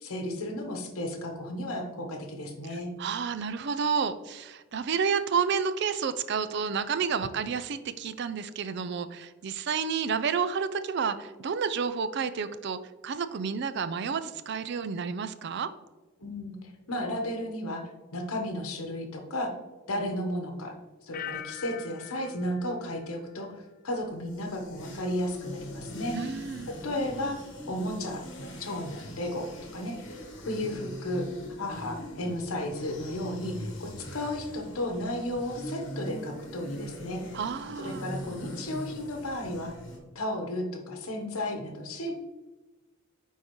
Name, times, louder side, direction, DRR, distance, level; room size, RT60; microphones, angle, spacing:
voice 1, 0.0-2.9 16.2-17.8 18.1-19.5 19.9-20.7 21.0-26.3 26.7-27.4 27.7-30.2 30.4-31.3 31.6-37.2 37.8-39.7 40.1-42.2, left 1 dB, 80° left, 4 dB, 1.0 m, -34 dB
voice 2, 2.7-15.7 26.1-26.7 37.3-38.0, right 6 dB, 50° right, 13 dB, 0.4 m, -30 dB
sound 1, 21.1-24.0 24.3-24.8, left 11 dB, 40° left, 0.4 m, -44 dB
sound 2, 24.0-40.0, equal, 55° left, 1.4 m, -42 dB
9.5 x 3.7 x 3.0 m, 1.2 s
head